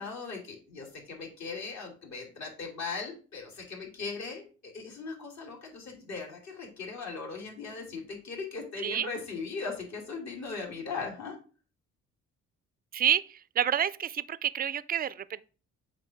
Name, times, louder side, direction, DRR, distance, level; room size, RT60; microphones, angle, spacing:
voice 1, 0.0-11.4, left 4 dB, 60° left, 2.6 m, -39 dB
voice 2, 12.9-15.4, right 9 dB, 30° right, 0.4 m, -29 dB
7.7 x 2.6 x 5.7 m
cardioid pair, 90°, 30 cm